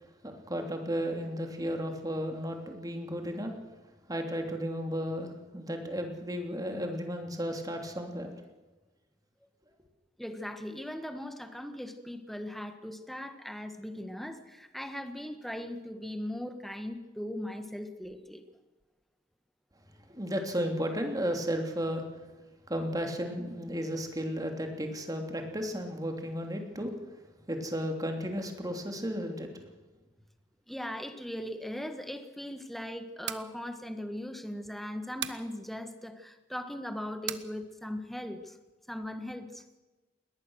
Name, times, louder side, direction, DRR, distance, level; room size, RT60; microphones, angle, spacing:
voice 1, 0.2-3.5 4.1-8.3 20.1-22.2 22.7-27.0 27.5-29.5, equal, 20° right, 4 dB, 3.0 m, -34 dB
voice 2, 10.2-18.4 30.7-38.6 38.9-39.6, left 1 dB, ahead, 8 dB, 1.5 m, -39 dB
sound 1, 33.1-33.5 35.2-35.5 37.3-37.5, right 11 dB, 70° right, 1.1 m, -36 dB
21.0 x 19.0 x 6.5 m, 1.2 s
head